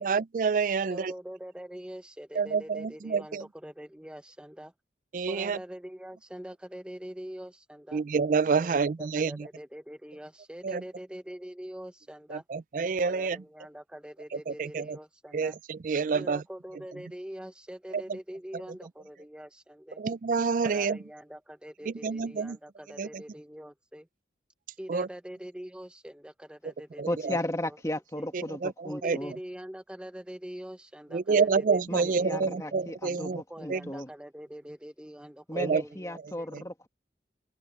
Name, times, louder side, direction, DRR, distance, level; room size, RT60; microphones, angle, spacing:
voice 1, 0.0-1.1 2.3-3.4 5.1-5.6 7.9-9.5 10.6-10.8 12.3-13.4 14.3-15.0 15.3-16.4 17.9-18.2 20.0-21.0 21.9-22.6 23.0-23.2 24.9-25.1 27.0-27.4 28.3-29.2 31.1-33.4 33.7-33.8 35.6-35.8 36.5-36.6, right 5 dB, 45° right, 0.4 m, -28 dB
voice 2, 0.8-4.7 5.3-8.0 8.6-12.4 13.0-15.5 16.1-20.0 20.6-24.1 24.8-27.8 28.2-28.3 28.9-31.6 32.0-32.7 33.5-36.5, equal, 5° right, 0.6 m, -44 dB
voice 3, 27.1-29.3 31.9-34.1 35.5-36.9, left 1 dB, 20° left, 1.9 m, -35 dB
head